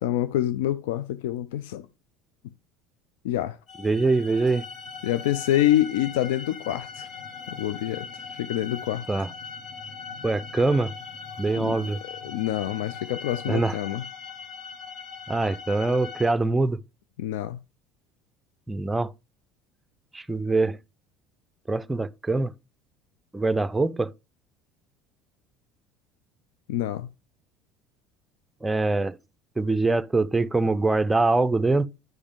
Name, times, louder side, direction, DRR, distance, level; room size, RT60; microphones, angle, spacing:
voice 1, 0.0-1.9 3.2-3.6 5.0-7.1 7.5-8.1 8.4-9.1 11.6-11.8 12.2-14.0 17.2-17.6 26.7-27.1, left 13 dB, 80° left, 0.4 m, -26 dB
sound 1, 3.7-16.3, left 5 dB, 50° left, 1.5 m, -40 dB
voice 2, 3.8-4.6 9.1-9.3 10.2-10.9 11.4-12.0 13.5-13.8 15.3-16.8 18.7-19.1 20.1-20.8 21.7-22.5 23.3-24.1 28.6-29.2 29.6-31.9, right 3 dB, 15° right, 0.5 m, -23 dB
9.5 x 5.0 x 3.6 m
hypercardioid pair, 75°, 0 cm